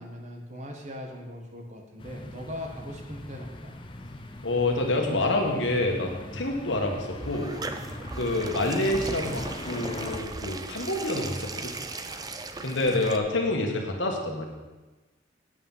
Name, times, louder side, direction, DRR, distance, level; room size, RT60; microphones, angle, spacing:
voice 1, 0.0-3.7, left 1 dB, 35° right, 2 dB, 1.4 m, -40 dB
sound 1, 2.0-10.2, left 1 dB, 25° left, 0.6 m, -41 dB
voice 2, 4.4-7.6 8.1-11.7 12.6-14.5, left 2 dB, 80° left, 2 dB, 1.6 m, -27 dB
sound 2, 7.2-13.2, right 3 dB, 20° right, 0.5 m, -37 dB
8.7 x 8.3 x 5.6 m, 1.2 s
head